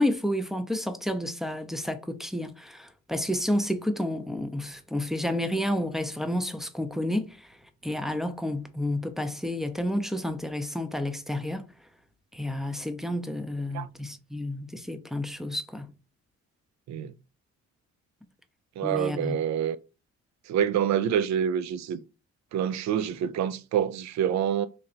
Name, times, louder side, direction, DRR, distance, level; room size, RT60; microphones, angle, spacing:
voice 1, 0.0-7.6 7.8-11.6 12.3-15.9 18.8-19.4, left 1 dB, ahead, 0.5 m, -30 dB
voice 2, 18.8-19.8 20.5-22.0 22.5-24.7, right 9 dB, 65° right, 0.5 m, -27 dB
3.1 x 2.8 x 3.8 m
cardioid pair, 90°, 30 cm